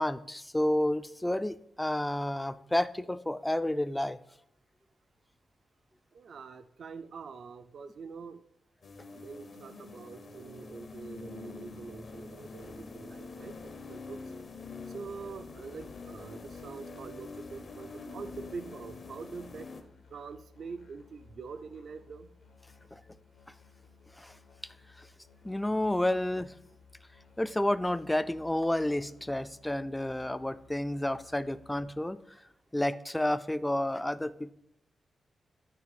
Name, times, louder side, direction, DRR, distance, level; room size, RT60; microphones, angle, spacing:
voice 1, 0.0-4.2 22.9-23.0 24.1-24.4 25.0-25.1 25.4-26.5 27.4-32.4 32.7-34.5, left 1 dB, 10° left, 13 dB, 0.3 m, -30 dB
voice 2, 6.1-8.4 9.2-13.6 13.9-14.2 14.9-19.7 20.1-22.3, right 5 dB, 65° right, 10 dB, 0.5 m, -44 dB
sound 1, 8.8-19.8, left 4 dB, 50° left, 0.8 m, -46 dB
Musical instrument, 13.4-31.8, left 5 dB, 85° left, 1.4 m, -59 dB
9.2 x 3.4 x 6.0 m, 0.78 s
wide cardioid pair, 125°, 0 cm